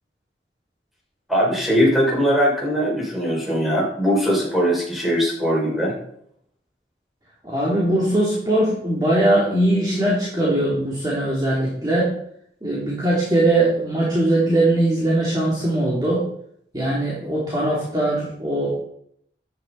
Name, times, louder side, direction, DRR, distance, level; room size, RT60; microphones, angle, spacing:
voice 1, 1.3-5.9, equal, ahead, -5 dB, 6.7 m, -20 dB
voice 2, 7.4-12.1 12.6-16.3 16.7-18.8, right 1 dB, 25° right, -7 dB, 3.5 m, -20 dB
14.5 x 11.5 x 4.4 m, 0.70 s
head